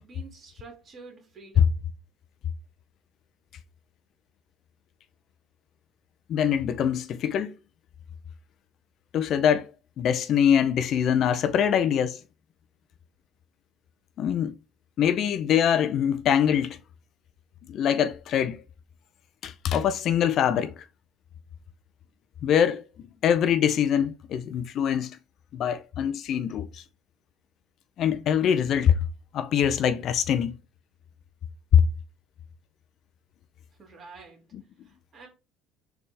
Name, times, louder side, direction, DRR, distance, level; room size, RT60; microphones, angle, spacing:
voice 1, 0.0-1.8 33.8-34.4 34.8-35.3, right 4 dB, 35° right, 2.3 m, -48 dB
voice 2, 6.3-7.5 9.1-9.7 10.0-12.2 14.2-14.6 15.0-16.8 17.7-18.6 19.4-20.7 22.4-22.9 23.2-25.2 25.5-26.8 28.0-29.0 29.3-30.6 31.7-31.8 34.5-34.6, left 9 dB, 55° left, 0.5 m, -23 dB
4.2 x 3.4 x 3.3 m
cardioid pair, 110°, 0 cm